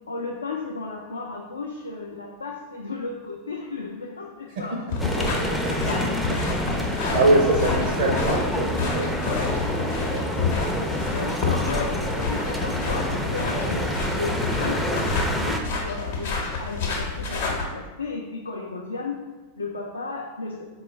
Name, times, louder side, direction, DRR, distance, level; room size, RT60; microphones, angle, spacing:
voice 1, 0.1-4.9 5.2-6.0 7.0-7.2 9.2-9.5 9.8-10.6 11.1-19.2 19.6-20.7, left 3 dB, 75° left, -1 dB, 0.4 m, -34 dB
sound 1, 4.9-17.6, left 4 dB, 55° left, 0.7 m, -29 dB
sound 2, 5.0-15.6, equal, ahead, 0.4 m, -28 dB
voice 2, 6.5-9.1 10.4-10.9, right 2 dB, 55° right, -1 dB, 0.5 m, -24 dB
4.3 x 2.2 x 3.1 m, 1.2 s
figure-of-eight pair, 90°, 0 cm